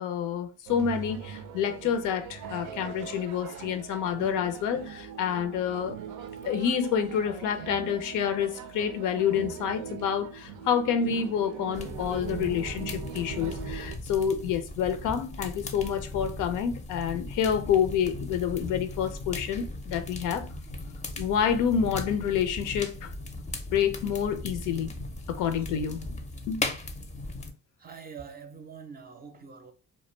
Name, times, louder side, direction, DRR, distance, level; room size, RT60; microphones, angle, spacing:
voice 1, 0.0-6.0 6.4-20.5 21.2-23.1 23.7-24.9 25.3-26.1 26.5-26.6, left 8 dB, 85° left, 0.5 m, -28 dB
sound 1, 0.7-14.0, right 8 dB, 85° right, 0.5 m, -41 dB
sound 2, 11.7-27.5, left 2 dB, 25° left, 0.5 m, -38 dB
voice 2, 27.8-29.7, right 6 dB, 30° right, 0.5 m, -44 dB
2.2 x 2.1 x 3.1 m
cardioid pair, 90°, 30 cm